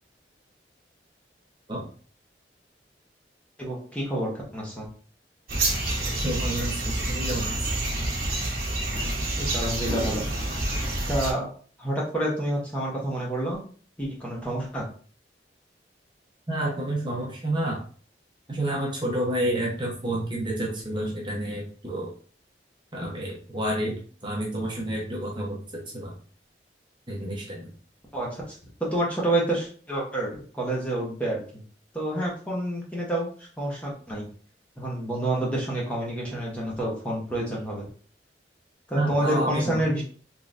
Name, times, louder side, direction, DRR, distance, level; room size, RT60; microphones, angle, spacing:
voice 1, 3.6-4.9 9.4-10.2 11.1-11.5 11.8-13.6 14.0-14.8 28.1-31.6 31.9-34.3 34.8-37.9 38.9-40.0, right 1 dB, 5° left, -4 dB, 1.0 m, -28 dB
sound 1, 5.5-11.3, right 1 dB, 55° right, 1.1 m, -28 dB
voice 2, 6.2-7.7 16.5-17.8 18.5-22.1 22.9-25.6 25.9-26.1 27.1-27.7 38.9-39.9, right 1 dB, 25° right, -3 dB, 0.8 m, -29 dB
3.7 x 3.1 x 2.5 m, 0.43 s
head